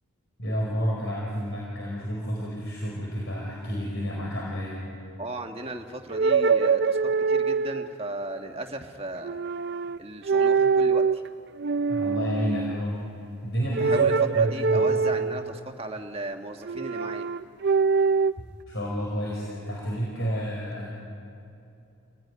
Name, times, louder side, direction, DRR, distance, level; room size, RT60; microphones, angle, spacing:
voice 1, 0.4-4.7 11.9-13.0 13.4-14.9 18.7-20.9, equal, 55° left, -3 dB, 4.7 m, -30 dB
voice 2, 5.2-9.4 10.0-11.2 13.8-17.3, right 2 dB, 25° right, 4 dB, 1.5 m, -36 dB
sound 1, 6.1-7.9 9.2-10.0 10.3-11.2 11.6-12.8 13.7-15.6 16.7-18.3, right 5 dB, 50° right, 0.5 m, -23 dB
28.5 x 17.5 x 9.6 m, 2.7 s
head